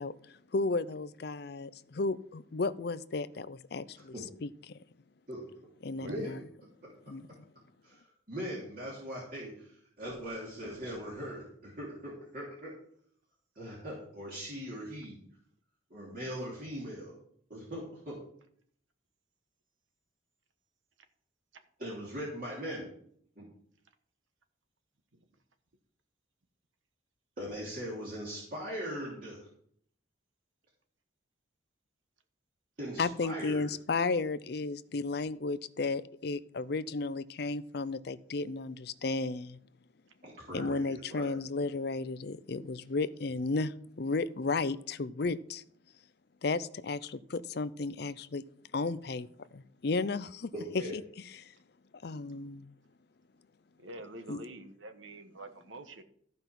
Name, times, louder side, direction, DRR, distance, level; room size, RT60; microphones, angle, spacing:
voice 1, 0.0-4.1 4.4-4.7 5.8-6.4 7.1-7.5 33.0-39.6 40.5-45.6 46.4-48.4 48.7-50.5 50.9-51.0 51.3-51.5 51.9-52.7 54.3-54.4, left 3 dB, 55° left, 15 dB, 0.5 m, -34 dB
voice 2, 6.0-6.4 7.8-12.7 13.6-15.2 15.9-17.1 17.5-18.2 21.8-22.9 23.4-23.5 27.4-29.5 32.8-33.7 40.2-41.3 50.5-50.9, equal, 45° right, -5 dB, 3.0 m, -40 dB
voice 3, 53.8-56.0, right 2 dB, 80° right, 8 dB, 1.3 m, -46 dB
14.0 x 5.3 x 5.9 m, 0.64 s
head